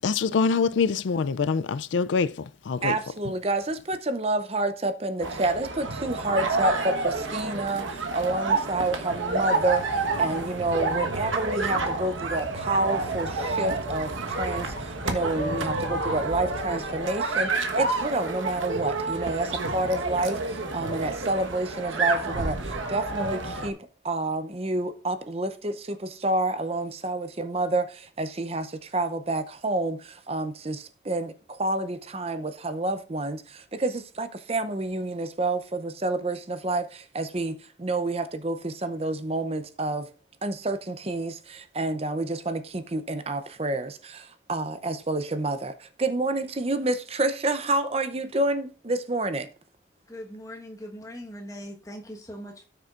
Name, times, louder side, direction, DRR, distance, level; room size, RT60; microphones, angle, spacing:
voice 1, 0.0-3.0, left 5 dB, 75° left, 0.4 m, -25 dB
voice 2, 2.8-23.8 24.0-40.1 40.4-49.5, right 2 dB, 30° right, 0.6 m, -29 dB
sound 1, 5.2-23.7, right 3 dB, 90° right, 1.3 m, -29 dB
sound 2, 9.6-16.6, right 1 dB, 70° right, 2.5 m, -41 dB
voice 3, 50.1-52.6, equal, 15° left, 1.3 m, -40 dB
17.0 x 6.7 x 2.5 m
head